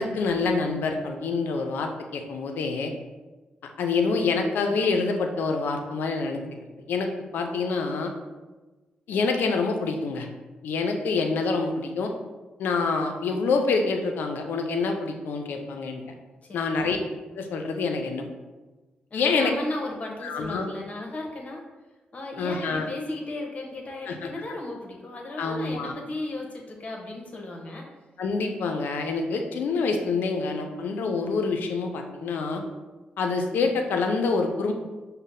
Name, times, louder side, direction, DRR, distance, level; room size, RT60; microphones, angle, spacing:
voice 1, 0.0-2.9 3.8-6.4 6.9-8.1 9.1-10.3 10.6-12.1 12.6-16.0 16.5-17.0 17.3-18.3 19.1-19.5 20.2-20.7 22.4-22.9 24.1-24.3 25.4-25.9 28.2-32.6 33.2-34.7, left 4 dB, 80° left, 4 dB, 0.4 m, -26 dB
voice 2, 16.4-16.9 19.1-21.6 22.1-27.9, left 2 dB, 45° left, 0 dB, 0.9 m, -35 dB
5.4 x 2.1 x 2.6 m, 1.2 s
cardioid pair, 60°, 3 cm